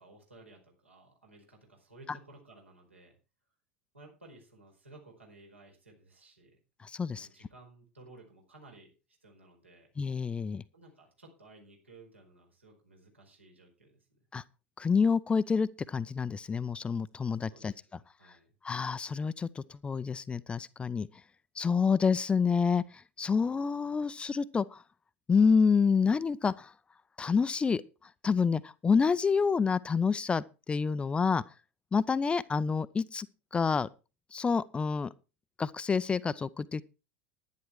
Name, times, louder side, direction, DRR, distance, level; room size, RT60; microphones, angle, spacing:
voice 1, 0.0-3.2 3.9-6.6 7.1-8.9 9.2-9.9 10.7-14.3 17.5-18.5, right 2 dB, 80° right, 4.7 m, -56 dB
voice 2, 6.8-7.3 10.0-10.6 14.3-14.4 14.8-17.7 18.6-21.1 21.6-24.8 25.3-26.7 27.2-27.8 28.2-31.4 31.9-33.3 33.5-33.9 34.3-35.1 35.6-36.8, left 5 dB, 15° left, 0.5 m, -28 dB
11.0 x 10.5 x 4.6 m
figure-of-eight pair, 80°, 7 cm